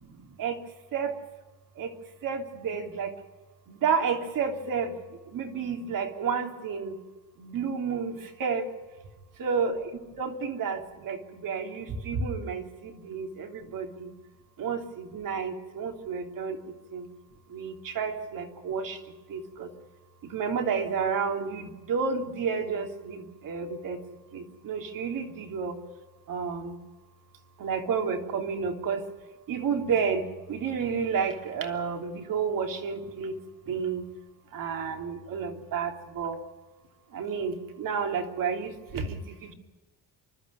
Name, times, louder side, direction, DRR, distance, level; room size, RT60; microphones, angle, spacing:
voice 1, 2.2-3.1 3.7-4.9 5.3-6.9 7.4-8.6 9.4-9.9 10.2-14.1 14.6-16.6 16.9-17.0 17.5-19.0 19.3-19.7 20.3-24.0 24.3-25.7 26.3-26.8 27.6-29.0 29.5-30.2 30.5-33.3 33.7-34.0 34.5-36.4 37.1-39.5, right 6 dB, 55° right, 3 dB, 3.3 m, -31 dB
28.0 x 12.0 x 9.7 m, 1.2 s
cardioid pair, 115°, 40 cm